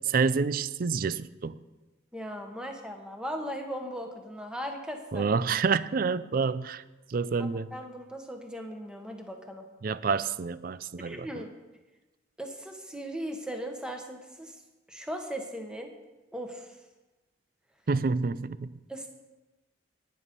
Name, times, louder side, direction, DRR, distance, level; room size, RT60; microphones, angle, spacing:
voice 1, 0.0-1.6 5.1-6.8 7.1-7.7 9.8-11.4 17.9-18.7, right 5 dB, 45° right, 0.4 m, -28 dB
voice 2, 2.1-5.3 7.4-9.6 11.0-11.5 12.4-14.6 14.9-15.9 16.3-16.8 18.9-19.1, equal, 5° right, 1.2 m, -38 dB
11.5 x 10.0 x 5.2 m
head